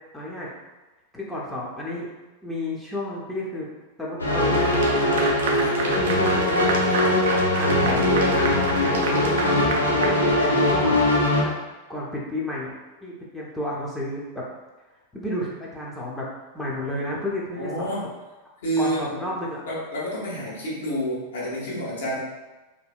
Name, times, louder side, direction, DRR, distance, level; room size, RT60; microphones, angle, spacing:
voice 1, 0.1-0.5 1.1-2.1 2.4-3.7 4.0-5.2 5.8-9.5 10.0-11.5 11.9-12.7 13.0-14.2 15.1-16.3 16.5-17.9 18.8-19.6, left 1 dB, 5° left, -5 dB, 0.6 m, -32 dB
sound 1, 4.2-11.4, left 1 dB, 80° left, 0.5 m, -21 dB
Clapping / Applause, 4.5-10.9, right 3 dB, 55° right, 0.4 m, -31 dB
voice 2, 17.6-18.1 18.6-19.0 19.6-22.2, right 1 dB, 60° left, -7 dB, 1.2 m, -28 dB
3.3 x 2.7 x 2.4 m, 1.1 s
figure-of-eight pair, 90°, 0 cm